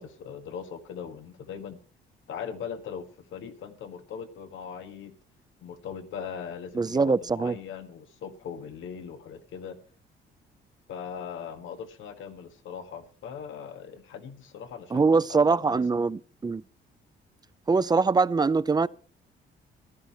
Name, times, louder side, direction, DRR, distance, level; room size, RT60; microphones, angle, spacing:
voice 1, 0.0-1.8 2.3-5.1 5.6-9.8 10.9-15.8, left 7 dB, 80° left, 1.7 m, -40 dB
voice 2, 6.8-7.6 14.9-16.6 17.7-18.9, right 4 dB, 20° right, 0.5 m, -23 dB
14.0 x 11.0 x 4.3 m
cardioid pair, 90°, 20 cm